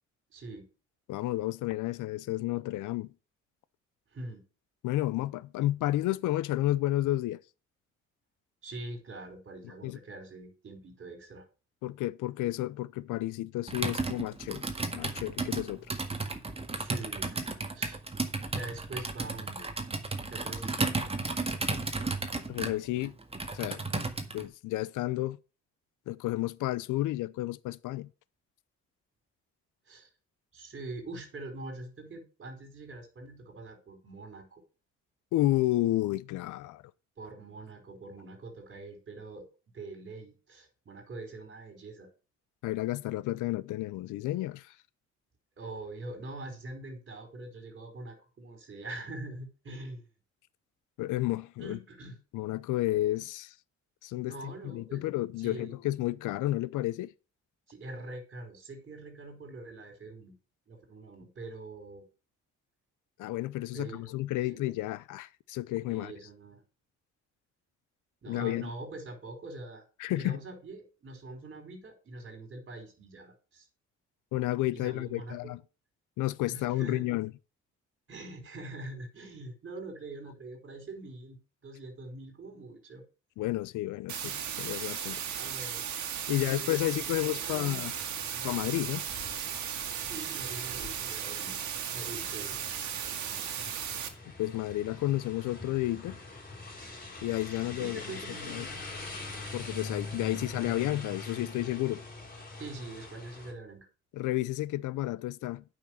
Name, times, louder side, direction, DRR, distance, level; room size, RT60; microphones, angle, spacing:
voice 1, 0.3-0.7 4.1-4.4 8.6-11.4 16.7-17.4 17.7-18.0 18.5-19.7 20.3-20.9 29.9-30.1 30.5-34.6 37.2-39.5 39.7-42.1 45.6-50.0 51.6-52.2 54.3-55.1 55.4-55.7 57.7-60.4 60.7-62.0 63.7-64.6 65.9-66.6 68.2-69.8 70.2-73.7 74.7-75.5 76.5-77.1 78.1-81.4 81.6-83.0 85.3-85.8 86.3-87.7 88.3-88.7 90.0-91.6 91.9-92.6 97.8-98.9 100.2-100.7 102.6-103.9, right 2 dB, 40° right, 4.7 m, -44 dB
voice 2, 1.1-3.1 4.8-7.4 9.8-10.0 11.8-14.6 14.9-15.9 22.5-23.2 23.5-23.8 24.3-25.4 26.1-28.1 35.3-36.8 42.6-44.7 51.0-51.8 52.3-53.5 54.0-57.1 63.2-66.1 68.3-68.7 70.0-70.4 74.3-75.6 76.2-77.3 83.4-85.2 86.3-87.9 88.4-89.0 94.4-96.2 97.2-98.0 98.5-98.7 99.5-102.0 104.1-105.6, left 16 dB, 85° left, 0.6 m, -31 dB
Computer keyboard, 13.7-24.5, right 3 dB, 20° right, 1.8 m, -34 dB
sound 1, 84.1-94.1, right 9 dB, 70° right, 1.9 m, -36 dB
sound 2, 87.2-103.5, left 2 dB, 30° left, 4.4 m, -44 dB
8.7 x 6.1 x 6.4 m
cardioid pair, 90°, 30 cm